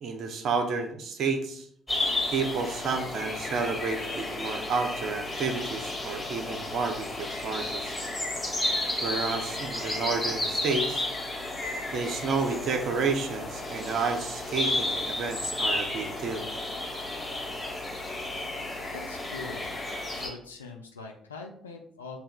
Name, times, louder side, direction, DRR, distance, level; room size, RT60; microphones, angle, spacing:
voice 1, 0.0-1.7 2.3-8.0 9.0-11.0 11.9-16.4, right 4 dB, 55° right, 6 dB, 0.6 m, -31 dB
sound 1, 1.9-20.3, left 2 dB, 15° left, 1.5 m, -32 dB
voice 2, 18.9-19.7 20.1-22.2, left 4 dB, 85° left, 1 dB, 0.4 m, -42 dB
7.8 x 2.8 x 2.3 m, 0.63 s
figure-of-eight pair, 45°, 0 cm